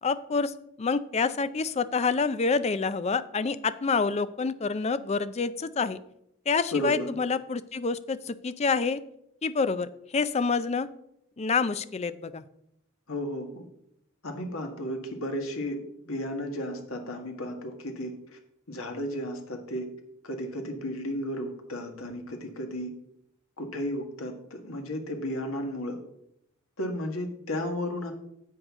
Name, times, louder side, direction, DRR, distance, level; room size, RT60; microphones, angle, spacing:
voice 1, 0.0-6.0 6.5-9.0 9.4-10.9 11.4-12.4, left 4 dB, 30° left, 14 dB, 0.4 m, -27 dB
voice 2, 6.7-7.1 13.1-13.7 14.2-15.8 16.0-18.4 18.7-19.9 20.2-22.9 23.6-26.0 26.8-28.1, equal, 85° left, 4 dB, 1.6 m, -33 dB
10.0 x 7.9 x 3.6 m, 0.75 s
head